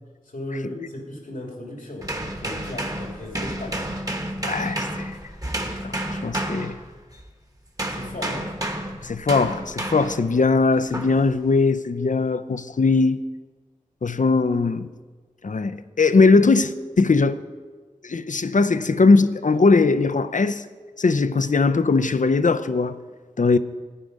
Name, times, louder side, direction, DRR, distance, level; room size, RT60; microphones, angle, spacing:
voice 1, 0.3-4.0 7.9-8.6, left 1 dB, 90° left, 2.5 m, -36 dB
sound 1, 2.0-7.3 7.8-10.3 10.9-11.2, right 1 dB, 25° right, 1.2 m, -30 dB
voice 2, 4.4-5.2 5.8-6.8 9.0-13.3 14.0-14.9 15.4-17.4 18.0-20.6 21.0-23.0 23.4-23.6, left 3 dB, 70° left, 0.5 m, -20 dB
12.5 x 9.4 x 5.3 m
wide cardioid pair, 45°, 14 cm